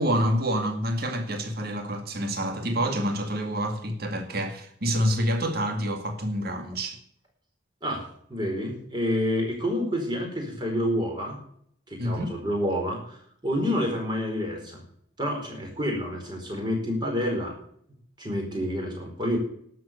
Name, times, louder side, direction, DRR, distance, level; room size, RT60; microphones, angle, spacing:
voice 1, 0.0-7.0 12.0-12.3, equal, 50° right, 2.1 m, -27 dB
voice 2, 8.3-11.4 11.9-14.8 15.2-17.5 18.2-19.4, equal, 20° right, 4.6 m, -28 dB
12.0 x 7.6 x 8.3 m
head